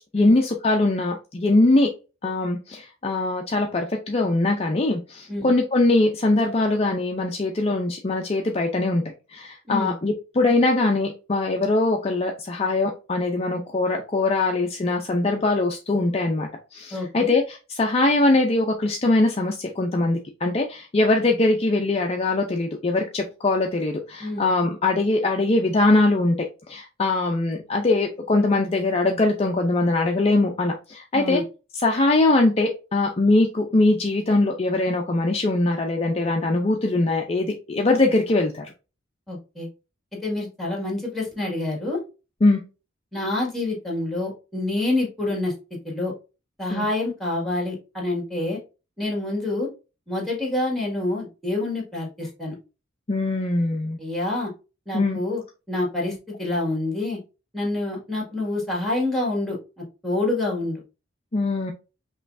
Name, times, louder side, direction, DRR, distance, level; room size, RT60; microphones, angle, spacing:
voice 1, 0.1-1.9 2.2-9.0 9.3-26.3 26.7-31.4 31.7-38.7 42.4-42.6 46.7-46.9 53.1-54.0 54.9-55.2 61.3-61.7, left 2 dB, 30° left, 2 dB, 0.5 m, -22 dB
voice 2, 16.9-17.3 24.2-24.5 31.1-31.4 39.3-39.7 40.2-42.0 43.1-45.5 45.8-46.1 46.6-48.6 49.0-49.7 50.1-52.5 54.0-54.5 54.9-55.4 55.7-57.2 57.5-60.8, left 2 dB, ahead, -2 dB, 1.8 m, -27 dB
5.5 x 3.1 x 2.6 m, 0.31 s
head